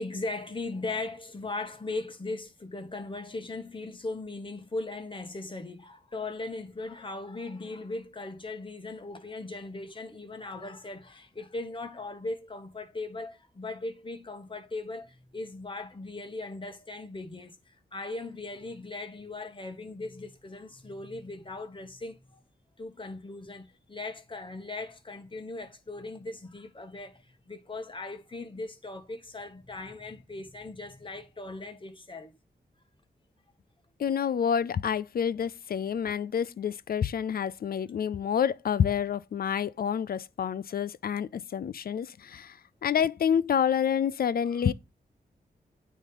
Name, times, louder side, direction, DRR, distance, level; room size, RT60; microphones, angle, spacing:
voice 1, 0.0-22.4 22.8-32.4 44.4-44.7, left 2 dB, 30° left, 1.4 m, -38 dB
voice 2, 34.0-44.7, left 8 dB, 60° left, 0.4 m, -28 dB
9.0 x 3.2 x 3.8 m
cardioid pair, 50°, 17 cm